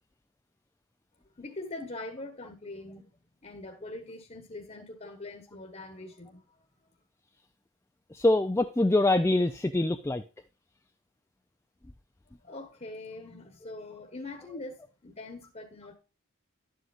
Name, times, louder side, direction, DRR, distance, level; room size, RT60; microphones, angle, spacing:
voice 1, 1.4-3.1 3.4-6.7 12.4-16.0, left 2 dB, 30° left, 1.2 m, -43 dB
voice 2, 8.1-10.2, left 2 dB, 10° left, 0.4 m, -24 dB
11.5 x 8.0 x 2.5 m
head